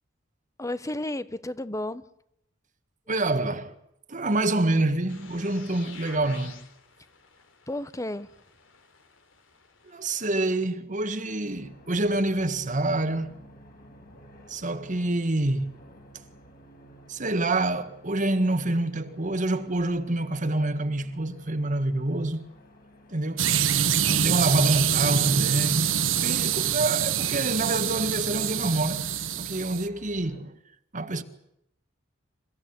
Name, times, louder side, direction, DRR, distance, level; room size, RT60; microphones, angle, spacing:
voice 1, 0.6-2.0 7.7-8.3 24.0-24.3, left 1 dB, 15° left, 1.1 m, -32 dB
voice 2, 3.1-3.7 4.1-6.6 9.8-13.4 14.5-15.7 17.1-22.5 23.1-23.5 24.2-29.1 29.4-30.5 30.9-31.2, right 2 dB, 40° right, 1.7 m, -27 dB
sound 1, 5.1-10.6, left 5 dB, 80° left, 3.6 m, -50 dB
sound 2, 11.5-30.4, equal, 50° left, 6.9 m, -53 dB
sound 3, 23.4-29.9, right 9 dB, 85° right, 1.3 m, -25 dB
28.5 x 16.5 x 9.7 m
head